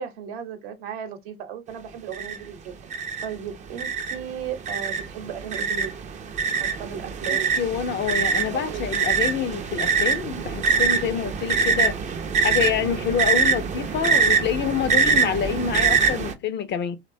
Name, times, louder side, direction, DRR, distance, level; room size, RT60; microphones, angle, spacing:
voice 1, 0.0-2.6 3.2-5.9 6.5-7.5 8.5-8.9, right 8 dB, 75° right, 0.8 m, -35 dB
sound 1, 2.1-2.4 2.9-3.3 3.8-16.3, right 5 dB, 25° right, 0.4 m, -24 dB
voice 2, 7.6-12.0 12.4-17.0, left 8 dB, 35° left, 0.5 m, -27 dB
2.9 x 2.2 x 2.5 m
hypercardioid pair, 75°, 32 cm